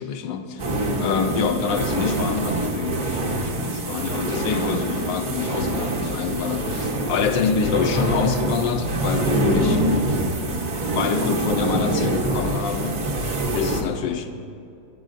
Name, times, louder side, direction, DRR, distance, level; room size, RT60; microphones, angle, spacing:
voice 1, 0.0-9.8 10.9-13.1 13.5-14.4, left 6 dB, 70° left, 7 dB, 1.2 m, -26 dB
sound 1, 0.6-13.8, right 1 dB, 45° right, 1.3 m, -25 dB
19.5 x 9.6 x 2.6 m, 2.5 s
omnidirectional pair, 2.3 m